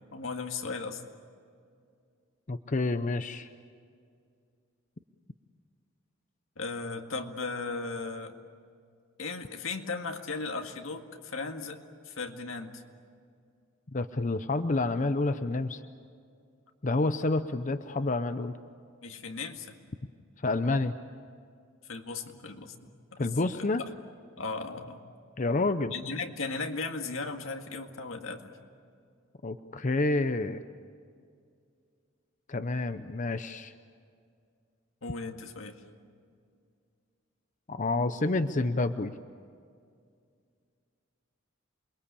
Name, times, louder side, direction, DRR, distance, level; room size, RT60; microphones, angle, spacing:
voice 1, 0.1-1.0 6.6-8.4 9.2-12.8 19.0-19.7 21.9-22.9 23.2-23.6 24.4-25.0 25.9-28.5 35.0-35.8, left 4 dB, 85° left, 4 dB, 2.0 m, -37 dB
voice 2, 2.5-3.5 13.9-15.8 16.8-18.6 20.4-20.9 23.2-23.8 25.4-25.9 29.4-30.6 32.5-33.7 37.7-39.1, left 2 dB, 40° left, 10 dB, 0.7 m, -28 dB
28.5 x 22.0 x 8.5 m, 2.3 s
head